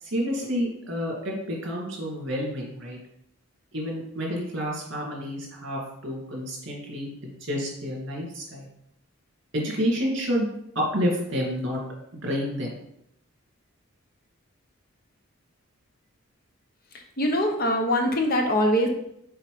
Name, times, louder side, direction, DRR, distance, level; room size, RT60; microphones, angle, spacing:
voice 1, 0.0-3.0 3.7-7.1 7.4-8.7 9.5-10.5 10.7-11.8 12.1-12.7, equal, 55° right, -2 dB, 2.7 m, -29 dB
voice 2, 17.2-18.9, equal, 45° left, 3 dB, 1.0 m, -22 dB
6.6 x 4.1 x 5.1 m, 0.75 s
head